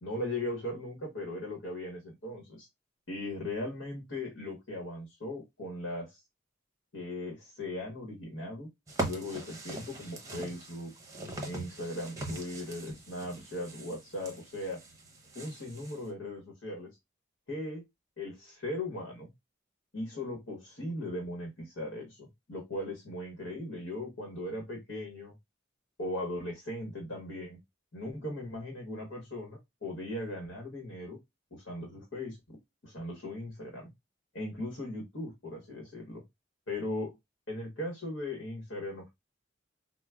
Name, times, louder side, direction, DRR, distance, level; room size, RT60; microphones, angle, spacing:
voice 1, 0.0-2.7 3.1-6.2 6.9-8.7 9.0-10.9 11.4-14.8 15.3-16.9 17.5-17.9 18.2-19.3 19.9-25.4 26.0-27.6 27.9-31.2 31.5-32.6 32.8-33.9 34.3-36.2 36.7-37.2 37.5-39.1, left 1 dB, 75° left, 0 dB, 1.2 m, -38 dB
sound 1, 8.9-16.0, right 1 dB, 15° right, 0.7 m, -41 dB
4.7 x 2.1 x 2.2 m, 0.19 s
head